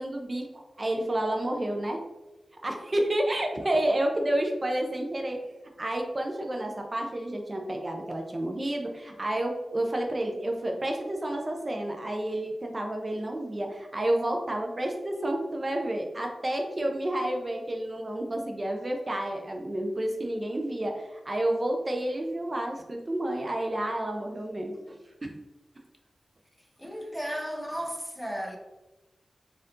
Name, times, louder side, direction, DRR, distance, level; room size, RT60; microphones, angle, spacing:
voice 1, 0.0-2.0 2.6-5.4 5.8-25.3, right 1 dB, 35° right, 0.5 m, -30 dB
voice 2, 26.8-28.6, equal, 5° left, 0.7 m, -34 dB
4.3 x 2.6 x 3.7 m
wide cardioid pair, 65°, 0 cm